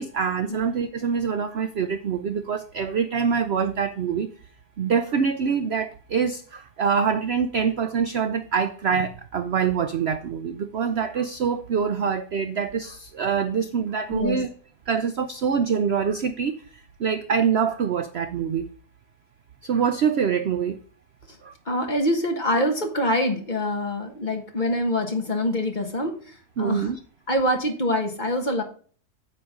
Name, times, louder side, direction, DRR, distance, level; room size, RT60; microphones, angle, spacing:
voice 1, 0.0-4.3 4.8-14.5 14.9-18.7 19.6-20.8 21.4-21.5 26.6-27.0, right 6 dB, 65° right, 10 dB, 0.6 m, -25 dB
voice 2, 21.6-26.9 27.3-28.6, left 1 dB, 30° left, 4 dB, 1.5 m, -25 dB
9.3 x 6.8 x 3.7 m, 0.43 s
omnidirectional pair, 1.8 m